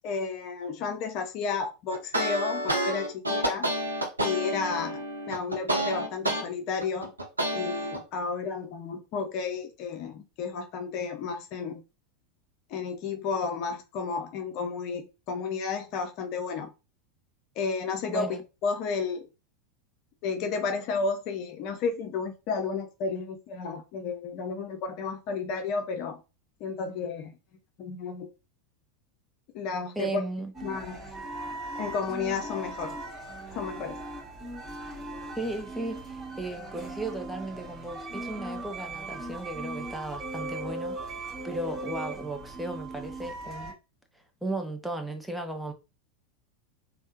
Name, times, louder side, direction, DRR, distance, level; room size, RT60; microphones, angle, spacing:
voice 1, 0.0-3.7 4.2-7.1 7.5-11.8 12.7-16.7 17.6-19.3 20.2-26.2 26.6-27.4 27.8-28.3 29.5-30.2 30.6-31.0 31.8-32.9 33.5-34.0, left 5 dB, 50° left, 0.6 m, -32 dB
sound 1, 1.9-6.4 6.8-8.0, right 1 dB, 85° right, 0.7 m, -29 dB
voice 2, 18.1-18.4 30.0-30.5 35.4-41.0 41.4-43.7 44.4-45.7, right 2 dB, 5° right, 0.6 m, -35 dB
sound 2, 30.5-43.7, right 2 dB, 20° right, 1.8 m, -38 dB
3.4 x 2.1 x 2.7 m
figure-of-eight pair, 85°, 0 cm